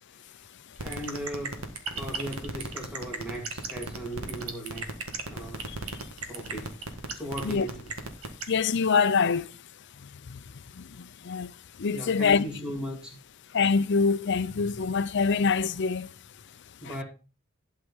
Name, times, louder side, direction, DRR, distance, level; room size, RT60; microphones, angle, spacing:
voice 1, 0.8-4.9 5.3-5.6 6.3-6.8 7.1-7.9 11.9-13.2 16.8-17.0, equal, 5° right, 2.4 m, -37 dB
sound 1, 0.8-8.4, right 4 dB, 85° right, 1.7 m, -34 dB
voice 2, 8.5-9.5 10.3-10.4 11.3-11.5 11.8-12.4 13.5-16.1 16.9-17.0, left 5 dB, 55° left, 0.6 m, -24 dB
12.0 x 4.7 x 5.4 m
head